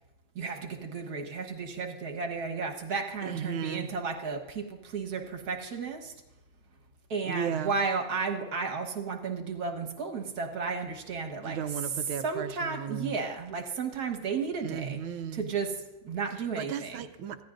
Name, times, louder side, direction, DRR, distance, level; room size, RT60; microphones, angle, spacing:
voice 1, 0.3-6.1 7.1-11.6 12.2-15.0 15.3-15.7 16.0-17.0, right 5 dB, 50° right, 3 dB, 1.7 m, -33 dB
voice 2, 3.2-3.9 7.2-7.8 11.4-13.1 14.6-15.5 16.3-17.4, right 8 dB, 80° right, 10 dB, 1.5 m, -35 dB
25.0 x 16.0 x 2.6 m, 1.0 s
omnidirectional pair, 2.3 m